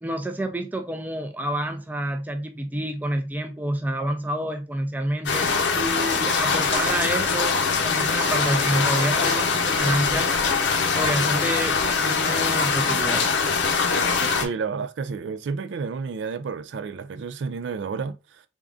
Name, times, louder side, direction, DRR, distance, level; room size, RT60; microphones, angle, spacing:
voice 1, 0.0-7.6 7.8-10.3 10.9-13.3, right 1 dB, 10° right, 0.4 m, -28 dB
sound 1, 5.3-14.5, left 5 dB, 80° left, 0.7 m, -23 dB
voice 2, 14.4-18.4, right 5 dB, 80° right, 0.4 m, -31 dB
3.6 x 3.6 x 2.4 m
head